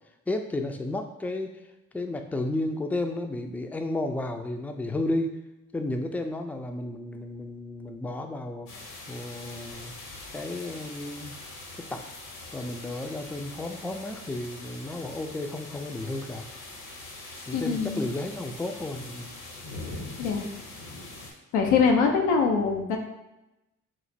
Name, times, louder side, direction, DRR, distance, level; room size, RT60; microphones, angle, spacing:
voice 1, 0.3-1.6 1.9-5.3 5.7-8.7 9.1-9.9 10.3-11.3 11.9-12.1 12.5-16.5 17.5-19.3, left 2 dB, 5° left, 5 dB, 0.4 m, -32 dB
sound 1, 8.7-21.3, left 2 dB, 65° left, 0.9 m, -43 dB
voice 2, 17.5-18.0 20.2-20.5 21.5-23.0, left 5 dB, 90° left, 2 dB, 0.5 m, -23 dB
3.1 x 2.1 x 4.0 m, 0.96 s
hypercardioid pair, 45°, 33 cm